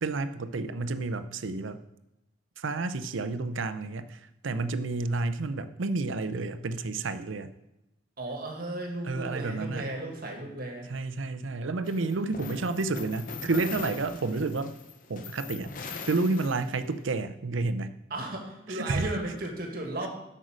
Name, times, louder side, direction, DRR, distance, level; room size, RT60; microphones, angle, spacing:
voice 1, 0.0-1.8 2.6-7.5 9.0-9.9 10.9-14.7 15.1-15.7 16.1-17.9 18.7-19.1, right 3 dB, 90° right, 11 dB, 0.6 m, -30 dB
voice 2, 8.2-10.9 18.1-20.1, right 1 dB, 50° right, 2 dB, 1.8 m, -35 dB
sound 1, 11.8-17.0, left 5 dB, 45° left, 0.8 m, -41 dB
8.1 x 6.5 x 6.4 m, 0.92 s
head